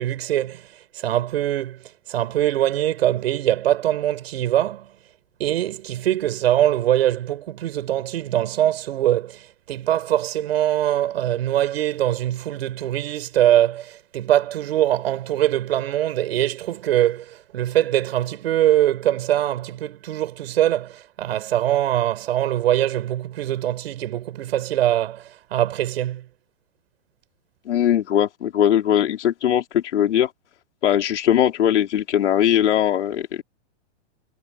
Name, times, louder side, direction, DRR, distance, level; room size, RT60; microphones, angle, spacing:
voice 1, 0.0-4.9 5.4-26.2, right 12 dB, 60° right, 6.8 m, -22 dB
voice 2, 27.7-30.3 30.8-33.4, left 10 dB, 75° left, 4.3 m, -20 dB
hypercardioid pair, 160°, 35 cm